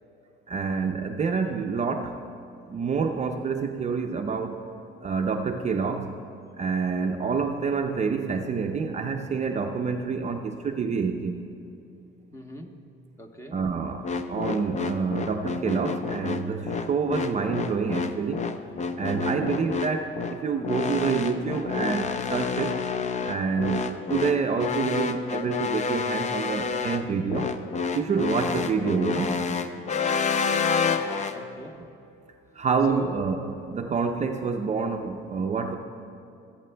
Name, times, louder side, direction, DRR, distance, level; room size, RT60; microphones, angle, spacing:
voice 1, 0.5-2.2 2.7-4.6 5.0-6.1 6.6-11.4 13.5-18.4 19.0-22.8 23.2-27.5 27.9-29.4 32.5-33.4 33.6-35.8, right 5 dB, 35° right, 5 dB, 0.5 m, -27 dB
voice 2, 12.3-12.7 13.2-13.6 30.8-31.8 32.9-33.2, equal, 15° left, 3 dB, 1.0 m, -39 dB
sound 1, 14.0-31.4, left 5 dB, 35° left, 0.5 m, -29 dB
19.0 x 8.5 x 2.2 m, 2.7 s
cardioid pair, 110°, 21 cm